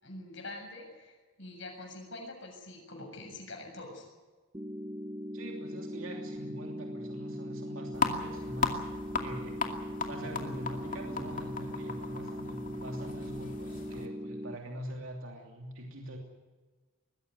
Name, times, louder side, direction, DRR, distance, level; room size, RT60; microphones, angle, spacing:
voice 1, 0.0-4.0, left 2 dB, 55° left, 2 dB, 7.3 m, -45 dB
sound 1, 4.5-14.6, equal, 15° right, 1.0 m, -40 dB
voice 2, 5.3-8.8 9.2-16.2, right 1 dB, 65° right, 1 dB, 2.9 m, -43 dB
sound 2, 7.9-14.1, left 4 dB, 40° left, 2.4 m, -36 dB
21.5 x 16.0 x 9.5 m, 1.3 s
head